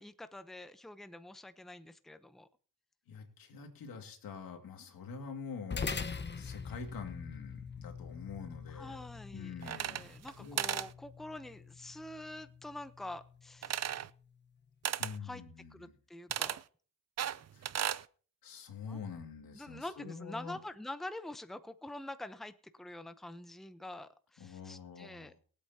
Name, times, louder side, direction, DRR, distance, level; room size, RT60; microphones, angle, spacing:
voice 1, 0.0-2.5 8.7-14.1 15.2-15.4 15.7-16.6 18.8-19.0 19.5-25.4, left 1 dB, ahead, 11 dB, 0.7 m, -46 dB
voice 2, 3.1-5.9 6.3-9.0 9.3-10.1 10.4-10.6 15.0-16.0 17.5-17.6 18.4-20.6 24.4-25.4, left 5 dB, 90° left, 4 dB, 2.3 m, -46 dB
sound 1, 5.7-14.4, left 5 dB, 30° left, 1.1 m, -44 dB
sound 2, 9.6-10.3 10.6-10.9 13.6-14.1 14.8-15.2 16.3-16.6 17.2-18.0, right 10 dB, 50° right, 0.6 m, -35 dB
22.0 x 8.3 x 2.8 m, 0.43 s
cardioid pair, 90°, 34 cm